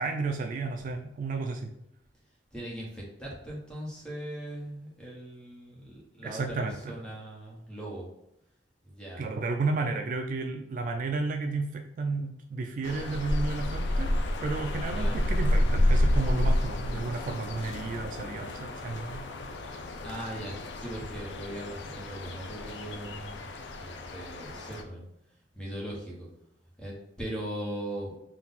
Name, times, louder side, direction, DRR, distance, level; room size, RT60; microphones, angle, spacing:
voice 1, 0.0-1.7 6.2-7.0 9.2-14.1 14.4-19.2, right 3 dB, 45° right, 5 dB, 0.3 m, -32 dB
voice 2, 2.5-8.1 8.8-9.3 14.8-15.2 20.0-23.4 23.8-26.3 26.8-28.1, right 1 dB, 5° left, -4 dB, 1.2 m, -40 dB
sound 1, 12.8-24.8, left 1 dB, 75° left, 0.5 m, -30 dB
3.8 x 2.4 x 4.1 m, 0.80 s
head